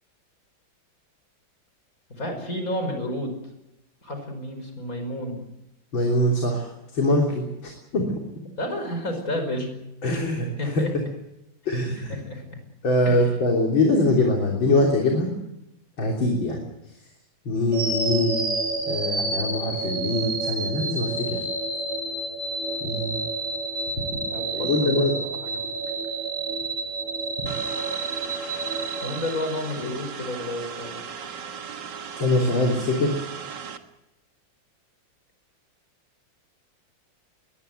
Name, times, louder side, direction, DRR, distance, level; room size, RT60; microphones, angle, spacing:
voice 1, 2.2-3.4 4.0-5.4 8.6-9.7 10.1-10.2 10.6-10.9 12.1-12.4 13.0-13.3 24.3-25.7 29.0-31.0, left 1 dB, 45° left, 6 dB, 5.7 m, -31 dB
voice 2, 5.9-8.2 10.0-10.8 11.7-12.2 12.8-15.3 16.0-16.6 17.5-18.4 18.9-21.5 22.8-23.2 24.0-24.1 24.5-25.1 32.2-33.3, left 1 dB, 80° left, 0 dB, 4.1 m, -23 dB
sound 1, 17.7-29.9, right 3 dB, 35° right, 4.2 m, -29 dB
sound 2, 27.5-33.8, right 7 dB, 65° right, 2.2 m, -37 dB
22.0 x 20.0 x 8.0 m, 0.90 s
omnidirectional pair, 2.1 m